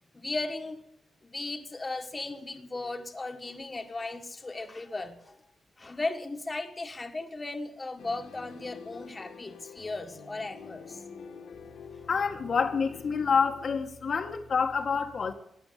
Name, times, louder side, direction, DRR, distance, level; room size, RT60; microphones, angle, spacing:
voice 1, 0.2-0.9 1.2-5.4 5.8-11.0, left 2 dB, 25° left, 1.5 m, -36 dB
sound 1, 8.0-13.7, left 6 dB, 85° left, 2.2 m, -47 dB
voice 2, 12.1-15.3, left 5 dB, 50° left, 1.4 m, -27 dB
15.5 x 9.5 x 8.5 m
cardioid pair, 105°, 0 cm